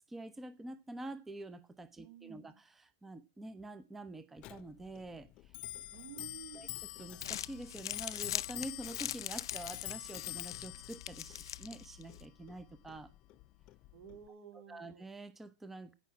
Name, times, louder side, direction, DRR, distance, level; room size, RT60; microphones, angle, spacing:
voice 1, 0.1-5.3 6.6-6.7 7.0-13.1 14.7-15.9, right 2 dB, 10° right, 0.9 m, -47 dB
voice 2, 2.0-2.6 5.9-6.8 13.9-15.1, right 9 dB, 50° right, 3.6 m, -52 dB
Clock, 4.4-14.3, left 17 dB, 40° left, 0.6 m, -47 dB
Crumpling crinkling, 7.0-12.2, left 11 dB, 80° left, 0.5 m, -42 dB
15.0 x 5.9 x 7.3 m
hypercardioid pair, 130°, 2 cm